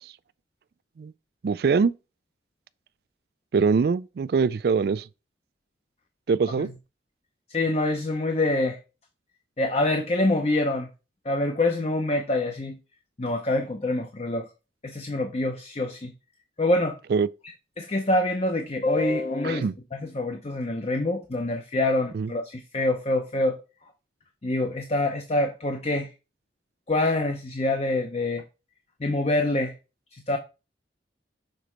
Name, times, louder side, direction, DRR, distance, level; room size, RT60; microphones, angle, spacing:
voice 1, 1.4-1.9 3.5-5.0 6.3-6.7 17.1-17.3 19.4-19.7 22.1-22.3, right 5 dB, 55° right, 0.3 m, -23 dB
voice 2, 7.5-8.8 9.6-10.9 11.2-12.8 13.2-14.4 14.8-16.1 16.6-17.0 17.8-23.6 24.4-26.1 26.9-28.4 29.0-29.7 30.1-30.4, left 2 dB, 35° left, 0.7 m, -25 dB
6.7 x 4.0 x 4.4 m
head